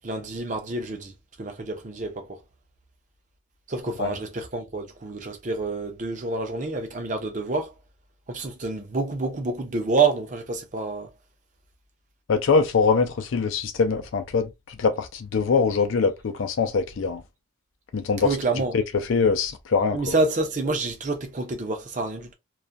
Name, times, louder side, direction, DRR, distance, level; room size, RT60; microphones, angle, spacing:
voice 1, 0.0-2.4 3.7-7.8 8.3-11.1 18.2-18.8 19.9-22.3, right 3 dB, 40° right, 0.6 m, -28 dB
voice 2, 12.3-14.5 14.8-17.2 17.9-18.3 18.7-18.8 19.1-20.0, left 5 dB, 70° left, 0.4 m, -23 dB
2.4 x 2.1 x 2.5 m
head